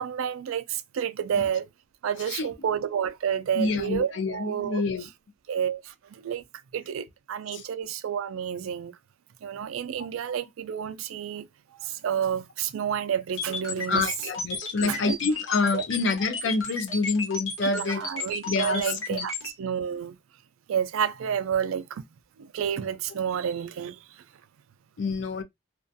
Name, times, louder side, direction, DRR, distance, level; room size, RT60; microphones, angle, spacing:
voice 1, 0.0-1.7 2.0-4.8 5.5-6.4 6.7-9.0 9.4-11.5 11.8-14.1 14.8-15.2 15.7-15.8 17.7-20.2 20.7-22.0 22.4-24.2, right 8 dB, 90° right, 0.3 m, -30 dB
voice 2, 3.6-5.1 7.5-7.6 13.9-18.1 18.5-18.8 19.1-19.3 25.0-25.4, left 3 dB, 65° left, 0.4 m, -27 dB
sound 1, 13.4-19.5, left 4 dB, 85° left, 1.1 m, -33 dB
2.4 x 2.3 x 2.6 m
head